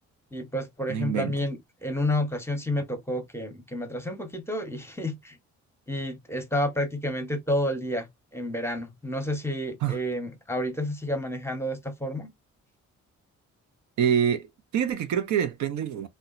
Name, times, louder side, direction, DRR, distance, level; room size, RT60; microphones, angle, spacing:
voice 1, 0.3-5.4 5.9-12.3, left 1 dB, 10° left, 0.8 m, -30 dB
voice 2, 0.9-1.3 9.8-10.0 14.0-16.1, right 8 dB, 70° right, 0.7 m, -26 dB
2.8 x 2.3 x 2.5 m
cardioid pair, 90°, 30 cm